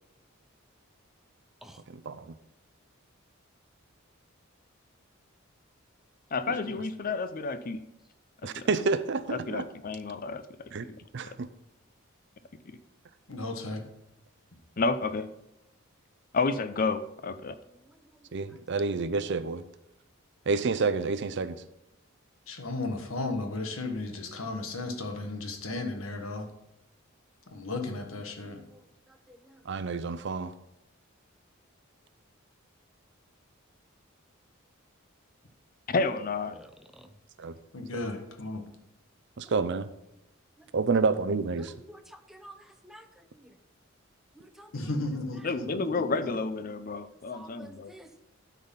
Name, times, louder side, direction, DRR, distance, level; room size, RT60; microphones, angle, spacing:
voice 1, 6.3-7.8 8.4-8.7 9.3-10.4 10.8-11.4 12.7-12.8 14.8-15.3 16.3-17.6 35.9-36.6 45.4-47.9, left 3 dB, 45° left, 12 dB, 0.6 m, -31 dB
voice 2, 8.4-9.6 10.7-10.9 11.1-11.5 18.3-19.6 20.5-21.6 29.7-30.5 37.4-37.6 39.4-39.9 40.7-41.7, right 4 dB, 60° right, 13 dB, 0.5 m, -29 dB
voice 3, 13.3-13.8 22.5-26.5 27.5-28.6 37.7-38.6 44.7-46.3, left 2 dB, 85° left, 5 dB, 1.4 m, -35 dB
voice 4, 17.7-18.6 28.3-29.7 36.5-37.2 39.4-39.6 40.6-40.7 41.6-43.6 44.3-44.7 45.3-45.5 47.0-48.1, right 1 dB, ahead, 7 dB, 0.6 m, -53 dB
12.0 x 4.1 x 5.5 m, 0.89 s
head